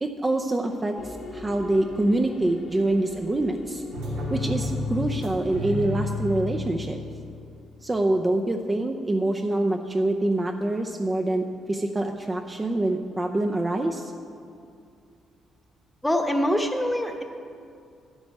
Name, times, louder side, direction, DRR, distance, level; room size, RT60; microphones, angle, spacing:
voice 1, 0.0-3.8 4.3-7.0 7.8-14.1, right 2 dB, 20° right, 3 dB, 0.6 m, -25 dB
sound 1, 1.0-8.1, left 3 dB, 65° left, 1.3 m, -42 dB
sound 2, 3.9-7.5, left 2 dB, 90° right, 2.2 m, -31 dB
voice 2, 16.0-17.2, equal, 10° left, 4 dB, 1.0 m, -24 dB
10.5 x 8.0 x 5.4 m, 2.3 s
cardioid pair, 90°, 0 cm